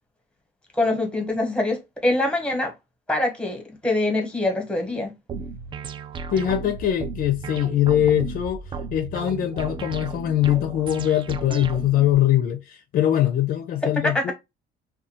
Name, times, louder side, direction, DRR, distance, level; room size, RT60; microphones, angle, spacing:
voice 1, 0.7-2.7 3.1-5.1 14.0-14.3, left 2 dB, 5° left, 1.0 m, -24 dB
sound 1, 5.3-12.1, right 5 dB, 30° right, 0.4 m, -34 dB
voice 2, 6.3-14.3, left 12 dB, 55° left, 0.5 m, -22 dB
2.4 x 2.3 x 2.7 m
cardioid pair, 110°, 17 cm